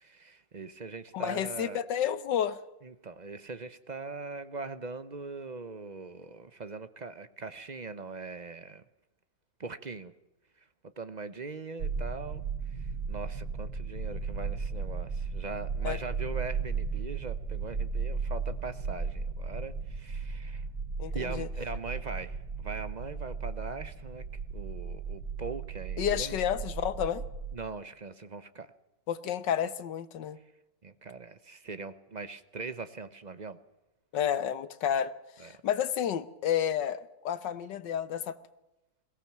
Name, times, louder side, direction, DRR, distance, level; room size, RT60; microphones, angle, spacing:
voice 1, 0.0-1.8 2.8-8.8 9.6-10.1 10.6-20.7 21.1-24.2 24.5-26.4 27.5-28.7 30.8-33.6 35.4-35.5, right 4 dB, 40° right, 0.6 m, -41 dB
voice 2, 1.1-2.6 15.8-16.0 21.0-21.5 26.0-27.2 29.1-30.4 34.1-38.4, left 9 dB, 75° left, 1.6 m, -31 dB
sound 1, 11.8-27.6, right 5 dB, 60° right, 2.0 m, -35 dB
21.5 x 18.0 x 7.4 m
omnidirectional pair, 2.0 m